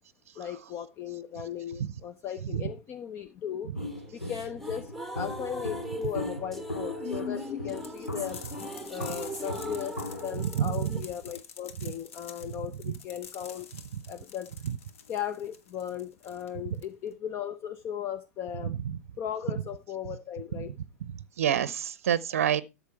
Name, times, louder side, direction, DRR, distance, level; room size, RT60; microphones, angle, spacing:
voice 1, 0.4-3.7 4.1-8.4 8.9-13.7 14.1-14.5 15.1-18.8 19.2-20.7, left 9 dB, 30° left, 0.8 m, -37 dB
Walk footsteps, 3.7-10.4, left 1 dB, 85° left, 2.1 m, -39 dB
sound 1, 3.8-11.0, equal, 5° left, 1.4 m, -39 dB
sound 2, 7.8-17.2, left 7 dB, 55° left, 1.5 m, -48 dB
voice 2, 10.3-11.0 12.9-13.0 18.6-18.8 20.6-20.7 21.4-22.6, right 9 dB, 60° right, 0.7 m, -27 dB
13.0 x 7.0 x 4.5 m
figure-of-eight pair, 100°, 8 cm